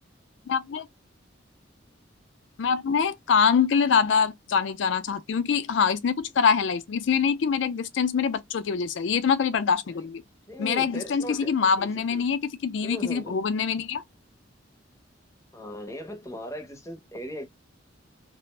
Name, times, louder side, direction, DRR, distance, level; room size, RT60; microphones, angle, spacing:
voice 1, 0.5-0.9 2.6-10.2 10.6-14.0, left 6 dB, 70° left, 0.4 m, -24 dB
voice 2, 10.5-12.2 12.8-13.4 15.5-17.5, equal, 15° left, 0.6 m, -38 dB
2.4 x 2.1 x 3.0 m
head